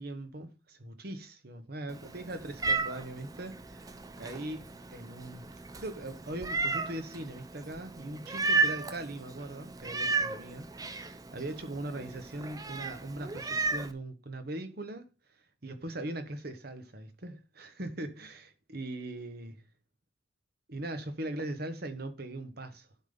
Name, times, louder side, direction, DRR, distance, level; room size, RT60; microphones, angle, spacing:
voice 1, 0.0-3.9 4.2-5.5 5.7-15.1 15.6-19.6 20.7-22.9, right 1 dB, 55° right, 1.3 m, -40 dB
Meow, 1.9-13.9, right 3 dB, 20° right, 0.6 m, -34 dB
11.5 x 3.9 x 5.4 m
head